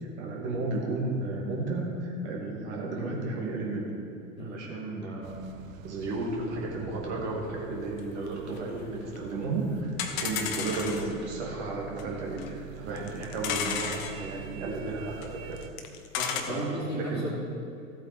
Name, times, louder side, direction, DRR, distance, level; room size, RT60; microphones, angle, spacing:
voice 1, 0.0-3.9 4.4-5.5 5.8-9.9 10.2-15.6 16.5-17.3, right 2 dB, 55° right, -2 dB, 2.5 m, -33 dB
sound 1, 5.2-15.7, right 9 dB, 75° right, 0.6 m, -45 dB
sound 2, 8.0-8.1 8.3-8.4 8.6-8.7 9.2-9.3 9.4-9.5 10.0-11.1 12.0-12.1 12.4-12.5 13.0-14.1 15.2-15.3 15.6-16.4, left 7 dB, 50° left, 1.2 m, -32 dB
voice 2, 16.2-17.3, equal, 90° left, -9 dB, 2.6 m, -34 dB
14.0 x 8.3 x 4.4 m, 2.6 s
figure-of-eight pair, 85°, 40 cm